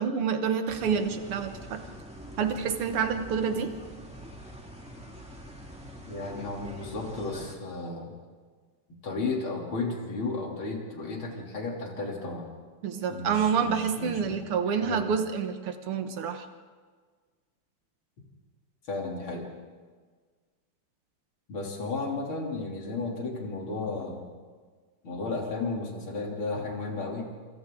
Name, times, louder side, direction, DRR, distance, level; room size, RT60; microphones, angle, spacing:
voice 1, 0.0-1.8 2.4-3.7 12.8-16.5, right 6 dB, 80° right, 7 dB, 2.2 m, -28 dB
sound 1, 0.7-7.5, equal, 5° right, 2.3 m, -45 dB
voice 2, 6.1-8.1 9.0-12.5 13.1-14.4 14.9-15.1 18.9-19.5 21.5-24.2 25.0-27.3, left 3 dB, 70° left, -1 dB, 3.9 m, -33 dB
27.0 x 26.5 x 3.8 m, 1.5 s
omnidirectional pair, 2.4 m